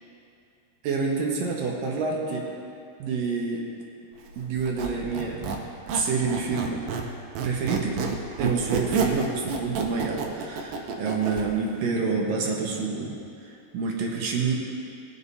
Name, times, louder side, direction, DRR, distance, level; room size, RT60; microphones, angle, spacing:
voice 1, 0.8-2.4 3.0-3.6 4.4-5.4 5.9-6.8 7.4-8.0 8.4-13.1 13.4-14.5, right 4 dB, 65° right, -1 dB, 2.5 m, -27 dB
Squeak, 4.6-7.1 7.4-11.5, right 5 dB, 80° right, 3.0 m, -29 dB
20.0 x 6.9 x 4.2 m, 2.5 s
omnidirectional pair, 5.2 m